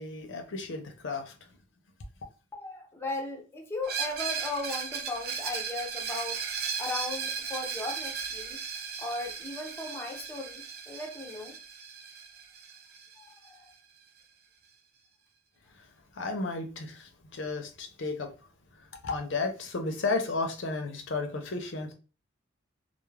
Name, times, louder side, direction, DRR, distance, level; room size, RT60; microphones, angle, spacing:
voice 1, 0.0-1.5 15.8-15.9 16.1-18.3 18.7-21.9, left 3 dB, 70° left, 0.6 m, -33 dB
voice 2, 2.5-6.4 6.8-8.6 9.0-11.6 13.2-13.7, left 2 dB, 15° left, 0.4 m, -37 dB
Screech, 3.8-13.5, right 6 dB, 50° right, 0.5 m, -36 dB
2.3 x 2.0 x 3.1 m
head